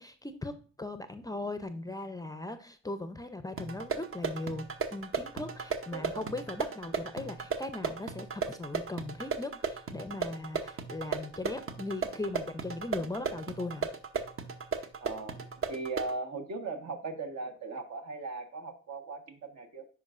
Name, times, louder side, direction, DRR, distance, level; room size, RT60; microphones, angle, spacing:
voice 1, 0.0-13.9, left 2 dB, 10° left, 9 dB, 0.5 m, -39 dB
sound 1, 3.6-16.2, right 5 dB, 45° right, 0.8 m, -36 dB
voice 2, 5.9-6.3 15.0-15.4 15.7-19.8, right 3 dB, 65° right, 5 dB, 1.3 m, -38 dB
10.5 x 4.6 x 2.5 m, 0.42 s
cardioid pair, 90°, 30 cm